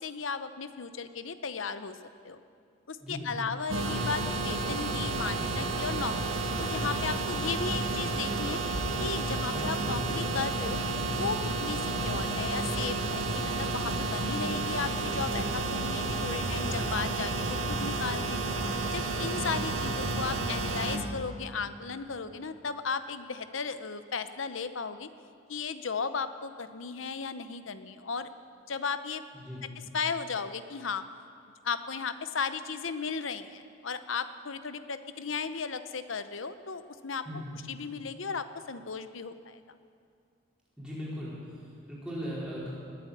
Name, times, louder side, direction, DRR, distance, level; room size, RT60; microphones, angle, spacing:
voice 1, 0.0-2.0 2.2-2.4 2.9-8.6 9.0-10.8 11.1-18.4 18.9-25.1 25.5-28.3 28.7-29.2 29.6-29.7 29.9-31.0 31.6-37.2 37.7-39.6, left 5 dB, 80° left, 11 dB, 0.8 m, -35 dB
voice 2, 3.0-3.5 9.5-9.7 19.8-20.2 29.3-29.6 37.2-37.6 40.8-42.7, equal, 5° right, -8 dB, 4.7 m, -39 dB
sound 1, 3.7-21.0, right 2 dB, 90° right, 1.6 m, -31 dB
20.0 x 8.7 x 8.1 m, 2.4 s
head